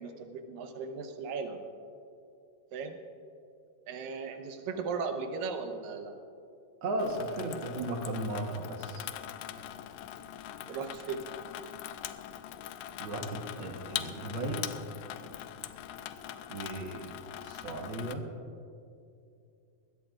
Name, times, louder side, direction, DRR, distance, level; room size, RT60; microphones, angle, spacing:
voice 1, 0.0-1.6 2.7-3.0 3.9-6.2 10.7-11.2, right 5 dB, 80° right, 5 dB, 2.7 m, -37 dB
voice 2, 6.8-9.1 13.0-14.6 16.5-17.1 17.4-18.3, right 1 dB, 55° right, 2 dB, 1.5 m, -35 dB
Water tap faucet / Sink (filling or washing), 7.0-18.1, left 11 dB, 80° left, 1.7 m, -42 dB
21.0 x 16.5 x 2.5 m, 2.5 s
omnidirectional pair, 3.9 m